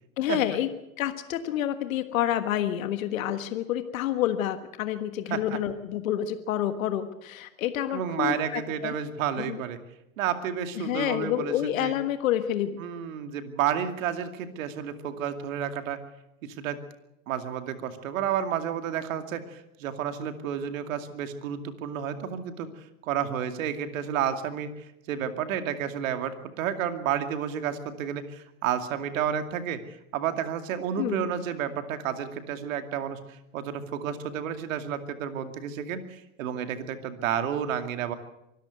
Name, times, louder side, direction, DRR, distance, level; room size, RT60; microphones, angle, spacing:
voice 1, 0.2-0.7 1.0-9.0 9.4-9.6 10.8-12.8 31.0-31.3, left 11 dB, 70° left, 10 dB, 1.5 m, -28 dB
voice 2, 7.9-9.8 10.2-11.9 12.8-16.0 16.4-16.8 17.3-22.7 23.0-24.7 25.1-38.2, right 9 dB, 70° right, 8 dB, 2.5 m, -31 dB
24.5 x 13.5 x 8.1 m, 0.86 s
hypercardioid pair, 100°, 42 cm